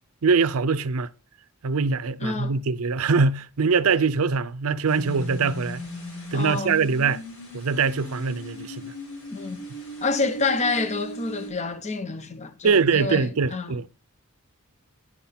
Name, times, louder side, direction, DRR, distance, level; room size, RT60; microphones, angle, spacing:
voice 1, 0.2-1.1 1.6-5.8 6.3-7.2 7.5-8.9 12.6-13.9, right 5 dB, 70° right, 0.5 m, -23 dB
voice 2, 2.2-2.5 6.3-6.7 9.3-9.6 10.0-13.7, left 3 dB, 30° left, 0.8 m, -28 dB
sound 1, 4.9-11.5, equal, 70° left, 5.3 m, -38 dB
11.0 x 5.9 x 5.7 m
head